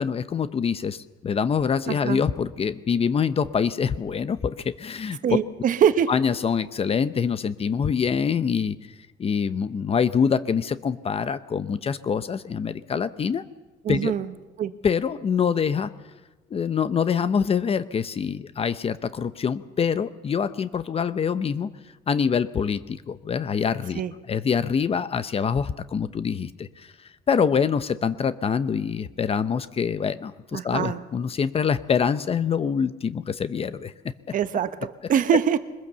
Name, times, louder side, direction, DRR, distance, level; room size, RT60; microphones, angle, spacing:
voice 1, 0.0-5.2 6.1-8.8 9.2-13.4 13.9-14.1 14.8-15.9 16.5-21.7 22.1-24.0 24.3-26.9 27.3-33.9, left 6 dB, 35° left, 13 dB, 0.8 m, -25 dB
voice 2, 1.9-2.2 5.2-6.1 13.8-14.3 14.6-14.7 23.9-24.1 30.5-31.0 34.3-35.6, right 9 dB, 50° right, 11 dB, 1.2 m, -23 dB
22.5 x 21.0 x 6.9 m, 1.2 s
cardioid pair, 110°, 17 cm